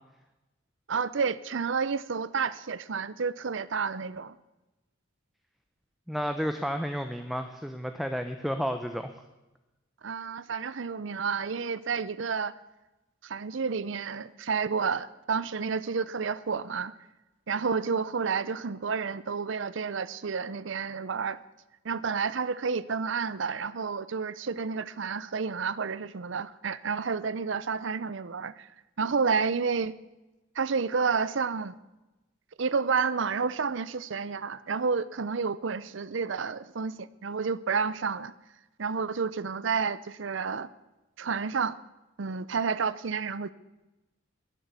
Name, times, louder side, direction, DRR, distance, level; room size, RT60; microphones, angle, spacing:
voice 1, 0.9-4.3 10.0-12.5 13.2-16.9 17.5-21.4 21.8-28.7 29.0-29.9 30.6-31.8 32.6-38.3 38.8-40.7 41.2-41.8 42.2-43.5, right 5 dB, 65° right, 17 dB, 0.6 m, -30 dB
voice 2, 6.1-9.1, equal, ahead, 7 dB, 0.7 m, -31 dB
21.0 x 7.7 x 8.2 m, 1.0 s
head